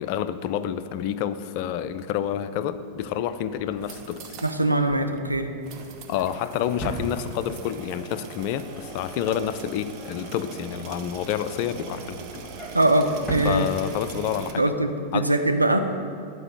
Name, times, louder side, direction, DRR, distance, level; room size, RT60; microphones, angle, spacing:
voice 1, 0.0-4.3 6.1-12.4 13.4-14.7 15.1-15.3, left 10 dB, 45° left, 13 dB, 0.4 m, -29 dB
Drawer open or close, 2.9-7.8 8.1-8.5 8.7-10.9 11.3-14.3 14.7-14.9 15.1-15.2, right 1 dB, 10° left, 1.5 m, -40 dB
sound 1, 3.7-4.6 4.9-5.0 5.6-14.5, right 5 dB, 40° right, 0.9 m, -41 dB
voice 2, 4.4-5.5 12.7-13.7 14.6-15.8, right 1 dB, 85° right, 5 dB, 0.6 m, -22 dB
Wind instrument woodwind instrument, 8.0-12.3, equal, 15° right, 2.3 m, -50 dB
9.8 x 4.7 x 7.7 m, 2.3 s
figure-of-eight pair, 90°, 0 cm